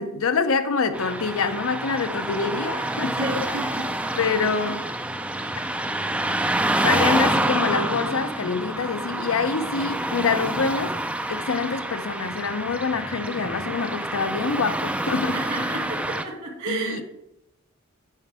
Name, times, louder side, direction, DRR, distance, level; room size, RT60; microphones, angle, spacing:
voice 1, 0.0-3.2 4.2-4.9 6.8-10.9 11.3-15.4 16.7-17.0, left 5 dB, 70° left, 0.6 m, -26 dB
Car passing by / Traffic noise roadway noise, 0.9-16.2, right 1 dB, 5° right, 0.4 m, -27 dB
voice 2, 3.2-4.2 15.3-17.0, right 2 dB, 65° right, 2.2 m, -31 dB
9.2 x 5.9 x 3.4 m
head